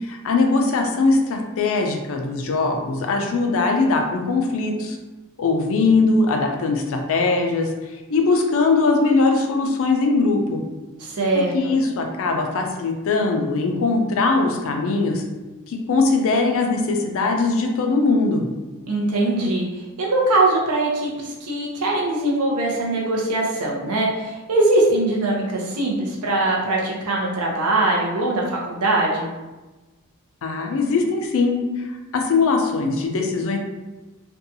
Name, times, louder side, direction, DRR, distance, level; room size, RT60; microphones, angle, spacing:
voice 1, 0.0-5.0 5.4-10.6 11.3-15.2 15.7-18.5 30.4-33.6, left 3 dB, 65° left, 3 dB, 0.4 m, -21 dB
voice 2, 11.0-11.7 18.9-19.6 20.0-29.3, right 2 dB, 80° right, -2 dB, 0.7 m, -21 dB
2.6 x 2.3 x 2.6 m, 1.2 s
head